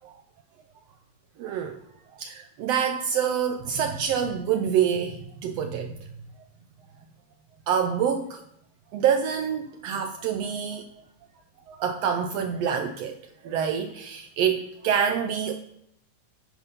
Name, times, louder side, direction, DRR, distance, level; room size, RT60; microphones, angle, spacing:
voice 1, 1.4-1.8 2.1-5.9 7.7-8.4 8.9-10.9 11.7-13.2 13.4-15.6, right 8 dB, 85° right, 1.4 m, -26 dB
9.8 x 5.2 x 5.6 m
omnidirectional pair, 3.6 m